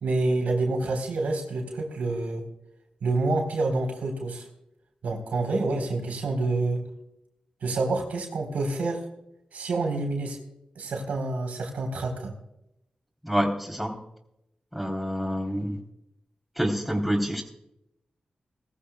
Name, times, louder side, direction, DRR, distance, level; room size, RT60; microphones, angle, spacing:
voice 1, 0.0-2.4 3.0-4.5 5.0-6.8 7.6-9.0 9.5-10.4 10.8-12.3, right 2 dB, 90° right, 2 dB, 3.9 m, -27 dB
voice 2, 13.2-14.0 14.7-15.8 16.6-17.4, equal, 5° right, 3 dB, 3.4 m, -27 dB
20.0 x 14.5 x 2.3 m, 0.83 s
cardioid pair, 55°, 3 cm